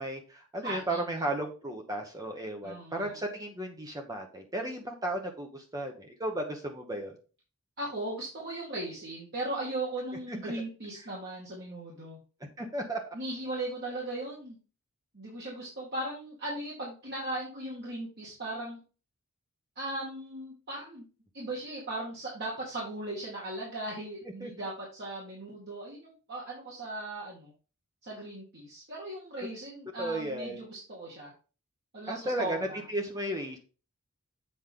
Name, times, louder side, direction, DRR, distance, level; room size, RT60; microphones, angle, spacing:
voice 1, 0.0-7.2 10.3-10.5 12.6-13.0 24.4-24.5 30.0-30.6 32.1-33.6, right 1 dB, 15° right, 2 dB, 1.0 m, -34 dB
voice 2, 0.6-1.3 2.6-3.2 7.8-12.2 13.1-14.6 15.1-18.8 19.8-21.1 21.3-27.5 28.0-31.3 31.9-32.8, right 1 dB, 50° right, -5 dB, 2.3 m, -38 dB
7.9 x 5.1 x 3.8 m, 0.35 s
head